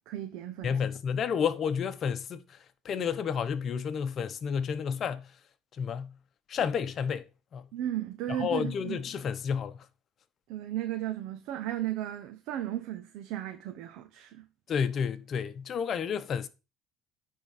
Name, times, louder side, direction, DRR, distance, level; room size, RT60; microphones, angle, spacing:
voice 1, 0.1-0.7 7.7-9.0 10.5-14.5, right 12 dB, 70° right, 0.9 m, -35 dB
voice 2, 0.6-2.6 2.8-5.3 5.8-6.2 6.5-7.3 7.5-7.7 8.3-9.8 14.7-16.5, left 7 dB, 45° left, 0.9 m, -31 dB
9.8 x 3.7 x 6.5 m
cardioid pair, 115°, 0 cm